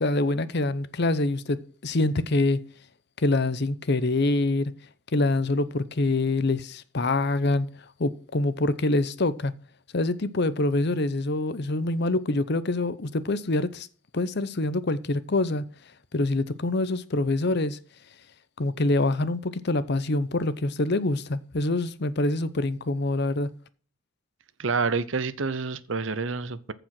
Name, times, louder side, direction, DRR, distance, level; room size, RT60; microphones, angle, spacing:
voice 1, 0.0-2.6 3.2-4.7 5.1-7.7 8.0-9.5 9.9-13.9 14.1-15.6 16.1-17.8 18.6-23.5, left 2 dB, 55° left, 0.7 m, -25 dB
voice 2, 24.6-26.7, right 4 dB, 65° right, 0.7 m, -28 dB
14.5 x 5.1 x 6.0 m
head